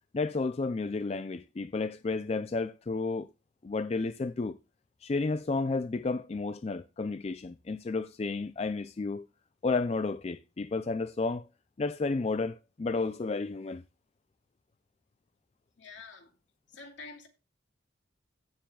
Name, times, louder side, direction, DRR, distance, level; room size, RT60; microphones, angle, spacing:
voice 1, 0.1-3.3 3.6-4.6 5.0-9.3 9.6-11.4 11.8-13.8, left 3 dB, 30° left, 0.3 m, -32 dB
voice 2, 15.8-16.3 16.7-17.3, left 4 dB, 70° left, 2.5 m, -47 dB
16.5 x 6.9 x 2.3 m
head